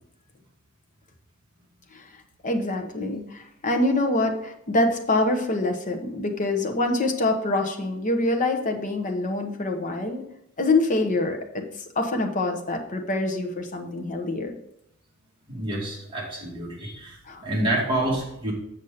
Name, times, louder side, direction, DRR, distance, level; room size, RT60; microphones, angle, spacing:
voice 1, 2.4-10.3 10.6-11.6 12.0-14.6 17.3-17.4, left 2 dB, 35° left, 4 dB, 1.0 m, -25 dB
voice 2, 15.5-17.2 17.4-18.5, right 1 dB, 25° right, -5 dB, 2.4 m, -27 dB
7.1 x 6.6 x 4.2 m, 0.79 s
head